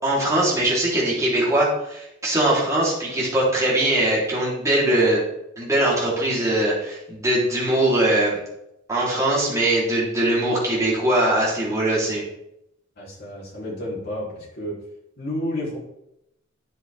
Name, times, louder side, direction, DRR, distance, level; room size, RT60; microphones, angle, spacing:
voice 1, 0.0-5.2 5.6-8.4 8.9-12.2, right 1 dB, 15° right, -6 dB, 3.7 m, -21 dB
voice 2, 13.0-14.8 15.2-15.8, left 1 dB, 50° left, -6 dB, 3.7 m, -31 dB
9.9 x 7.5 x 3.6 m, 0.81 s
head